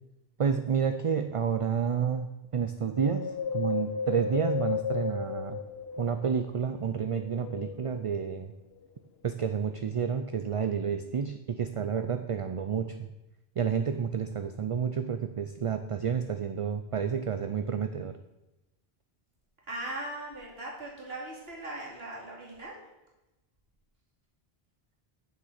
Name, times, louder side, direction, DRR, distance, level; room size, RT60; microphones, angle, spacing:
voice 1, 0.4-2.3 2.5-5.6 6.0-8.5 9.2-13.1 13.6-18.2, right 7 dB, 45° right, 9 dB, 0.4 m, -30 dB
Wind, 2.9-6.5 7.0-8.3 8.8-8.9, left 7 dB, 80° left, 1.0 m, -34 dB
voice 2, 19.7-22.7, right 1 dB, 75° right, -3 dB, 3.0 m, -39 dB
7.7 x 6.6 x 6.5 m, 0.99 s
omnidirectional pair, 1.0 m